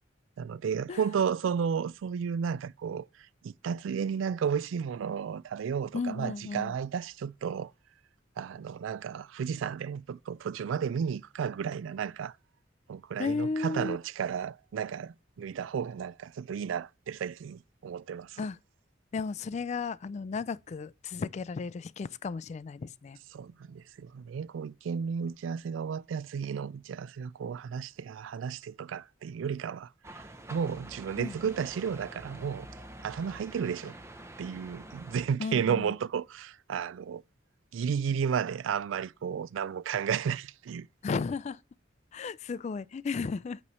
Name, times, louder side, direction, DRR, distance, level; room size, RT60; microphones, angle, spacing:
voice 1, 0.4-3.0 3.4-7.7 8.4-12.3 12.9-18.4 23.3-30.2 30.5-32.7 33.0-33.9 34.4-37.2 37.7-40.9, right 7 dB, 85° right, 0.3 m, -33 dB
voice 2, 5.9-6.7 13.2-14.0 18.4-18.6 19.1-23.2 31.2-31.4 35.4-35.9 41.0-41.6 42.1-43.6, left 4 dB, 35° left, 0.3 m, -34 dB
sound 1, 30.0-35.3, right 1 dB, 15° right, 0.6 m, -47 dB
8.5 x 3.1 x 5.3 m
head